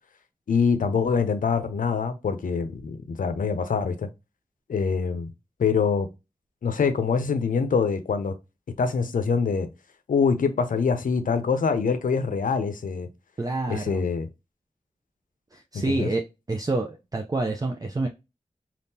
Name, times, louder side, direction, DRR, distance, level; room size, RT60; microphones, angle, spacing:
voice 1, 0.5-4.1 4.7-5.3 5.6-6.1 6.6-8.3 8.8-9.7 10.1-13.1 13.7-14.3 15.7-16.1, left 5 dB, 90° left, 0.5 m, -24 dB
voice 2, 13.4-14.0 15.5-18.1, right 2 dB, 25° right, 0.5 m, -28 dB
3.5 x 2.4 x 2.7 m
cardioid pair, 45°, 14 cm